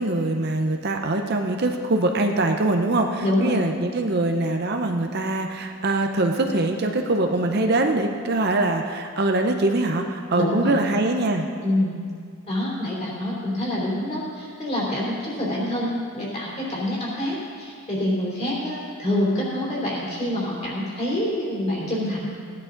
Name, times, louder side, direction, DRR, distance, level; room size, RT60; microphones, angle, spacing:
voice 1, 0.0-11.5, right 2 dB, 45° right, 4 dB, 0.7 m, -23 dB
voice 2, 3.2-3.6 10.3-10.8 11.6-12.0 12.5-22.3, left 1 dB, 30° left, -5 dB, 3.3 m, -26 dB
16.0 x 10.5 x 3.9 m, 2.2 s
head